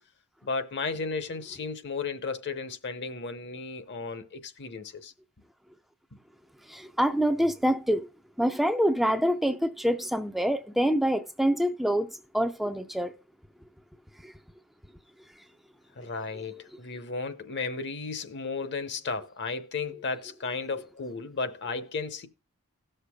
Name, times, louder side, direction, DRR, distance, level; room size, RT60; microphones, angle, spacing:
voice 1, 0.4-5.1 6.1-6.2 16.0-22.3, left 4 dB, 50° left, 0.8 m, -34 dB
voice 2, 6.7-8.1 8.4-12.1 12.3-13.1 14.2-14.3, equal, ahead, 0.4 m, -26 dB
17.5 x 6.6 x 2.2 m
head